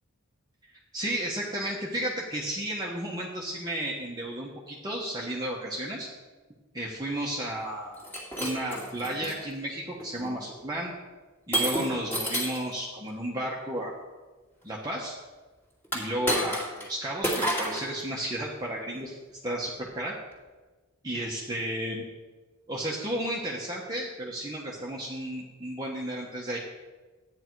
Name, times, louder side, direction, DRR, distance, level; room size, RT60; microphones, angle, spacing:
voice 1, 0.9-6.1 6.7-8.0 8.4-10.9 11.5-14.0 14.6-15.2 15.9-19.1 19.4-20.2 21.0-22.0 22.7-26.6, right 1 dB, 20° right, -4 dB, 1.3 m, -33 dB
Shatter, 8.0-9.4 10.0-10.3 11.5-12.7 15.8-16.9 17.2-17.9, right 1 dB, 10° left, 2.4 m, -30 dB
13.0 x 9.7 x 4.7 m, 1.3 s
head